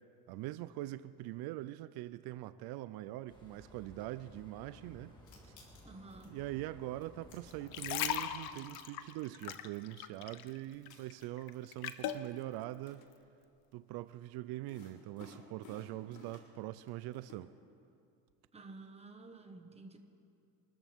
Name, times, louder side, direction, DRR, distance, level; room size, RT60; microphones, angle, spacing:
voice 1, 0.3-5.2 6.3-13.0 13.7-17.5, right 15 dB, 85° right, 0.5 m, -43 dB
sound 1, 3.3-8.3, equal, 10° left, 2.2 m, -57 dB
sound 2, 5.1-6.3 7.0-8.1 8.5-8.6 9.8-9.9 10.3-10.4 10.7-12.4 12.7-13.0 14.7-16.6 16.8-17.4, left 3 dB, 55° left, 4.0 m, -58 dB
voice 2, 5.8-6.3 18.5-20.0, right 3 dB, 15° right, 1.4 m, -51 dB
sound 3, 7.5-10.6 10.9-12.3 12.9-13.0, left 11 dB, 75° left, 0.9 m, -38 dB
25.5 x 13.5 x 3.6 m
cardioid pair, 125°, 36 cm